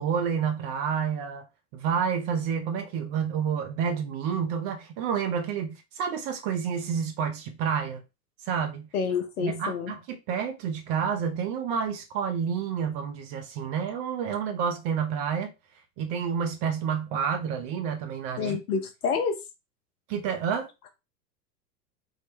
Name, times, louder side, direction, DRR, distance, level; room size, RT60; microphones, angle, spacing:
voice 1, 0.0-1.5 1.7-8.0 8.5-8.9 9.4-15.5 16.0-18.6 20.1-20.7, right 7 dB, 30° right, 0.5 m, -29 dB
voice 2, 8.9-9.9 18.4-19.4, left 6 dB, 65° left, 0.9 m, -28 dB
3.6 x 2.1 x 3.2 m
figure-of-eight pair, 90°, 48 cm